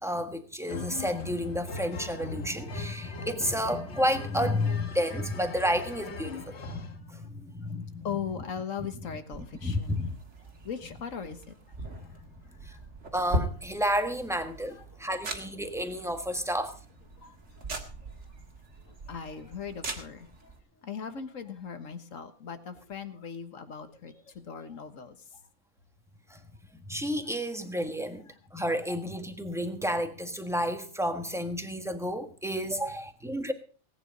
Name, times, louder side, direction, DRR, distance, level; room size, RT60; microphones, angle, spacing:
voice 1, 0.0-8.2 9.6-10.1 12.6-12.7 13.1-16.8 26.3-26.4 26.9-33.5, equal, ahead, 1.4 m, -31 dB
sound 1, 0.7-7.0, left 2 dB, 55° left, 1.4 m, -40 dB
voice 2, 8.0-10.1 10.6-12.1 12.6-12.8 14.7-14.8 16.4-16.5 17.2-17.7 18.9-20.5 20.8-25.4 27.3-27.4 28.3-28.4, left 7 dB, 75° left, 1.7 m, -40 dB
sound 2, 9.3-20.6, right 1 dB, 60° right, 2.2 m, -40 dB
18.5 x 9.4 x 5.3 m
omnidirectional pair, 1.4 m